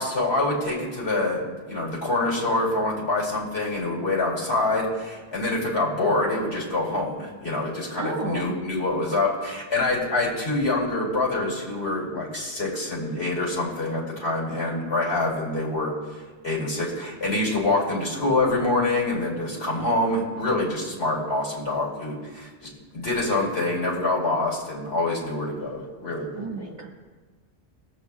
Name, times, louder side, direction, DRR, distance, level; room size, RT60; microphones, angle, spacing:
voice 1, 0.0-15.9 16.4-26.7, left 2 dB, 80° left, -5 dB, 3.1 m, -26 dB
voice 2, 8.0-8.5 26.4-26.9, right 3 dB, 40° right, -3 dB, 1.7 m, -32 dB
23.0 x 7.7 x 2.4 m, 1.4 s
omnidirectional pair, 1.1 m